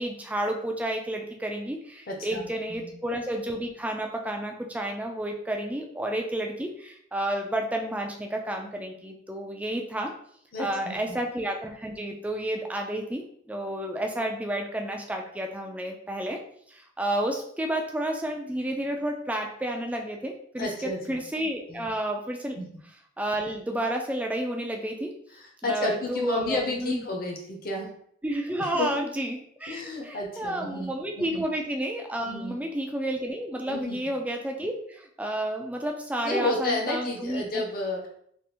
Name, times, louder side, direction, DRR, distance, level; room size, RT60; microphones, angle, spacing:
voice 1, 0.0-10.1 10.6-16.4 16.7-22.6 23.2-25.1 25.6-27.0 28.2-37.6, right 1 dB, 5° right, 2 dB, 0.3 m, -31 dB
voice 2, 2.1-2.9 10.5-11.0 20.6-21.2 21.7-21.9 22.6-22.7 25.4-27.9 28.6-29.1 29.7-30.9 31.2-31.4 32.2-32.6 33.7-34.0 36.2-38.1, left 2 dB, 45° left, 0 dB, 0.7 m, -31 dB
3.4 x 2.5 x 2.9 m, 0.67 s
head